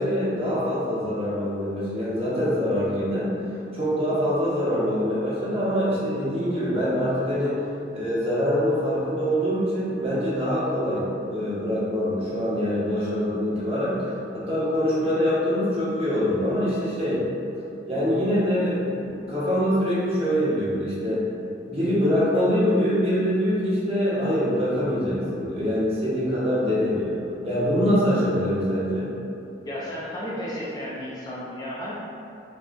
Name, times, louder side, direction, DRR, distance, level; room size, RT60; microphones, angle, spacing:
voice 1, 0.0-3.3 3.7-7.6 7.9-17.2 17.9-21.2 21.7-27.2 27.4-29.1, equal, 35° right, -10 dB, 1.2 m, -24 dB
voice 2, 29.7-31.9, equal, 20° left, -7 dB, 0.5 m, -33 dB
5.7 x 2.4 x 2.7 m, 2.7 s
head